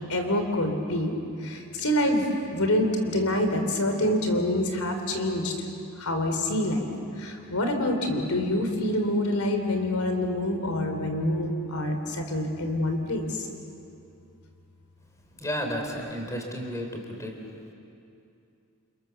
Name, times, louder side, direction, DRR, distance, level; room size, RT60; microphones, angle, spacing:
voice 1, 0.1-1.1 1.4-2.2 2.5-5.5 5.9-6.9 7.2-13.5, left 1 dB, 80° left, 5 dB, 3.5 m, -26 dB
voice 2, 15.4-17.3, equal, 15° left, 2 dB, 3.7 m, -32 dB
29.5 x 29.0 x 7.0 m, 2.6 s
head